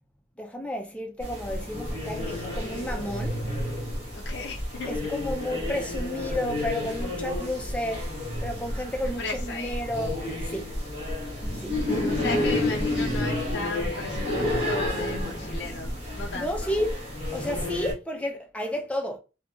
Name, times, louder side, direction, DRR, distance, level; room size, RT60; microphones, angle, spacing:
voice 1, 0.4-3.4 4.9-8.1 8.4-10.2 10.5-10.7 11.5-11.8 16.3-17.0 17.3-19.2, equal, 5° left, 0.5 m, -32 dB
sound 1, 1.2-17.9, left 1 dB, 35° right, 1.0 m, -30 dB
voice 2, 4.1-5.0 9.2-9.8 12.0-16.7, left 3 dB, 70° left, 0.4 m, -36 dB
2.8 x 2.7 x 2.3 m
head